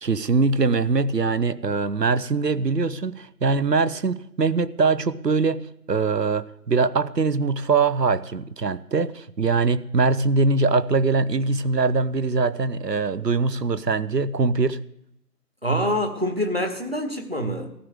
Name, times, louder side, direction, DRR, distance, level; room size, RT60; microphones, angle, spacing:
voice 1, 0.0-14.8, right 4 dB, 80° right, 15 dB, 0.8 m, -22 dB
voice 2, 15.6-17.7, equal, 40° right, 5 dB, 1.4 m, -25 dB
14.5 x 14.0 x 3.7 m, 0.78 s
figure-of-eight pair, 175°, 48 cm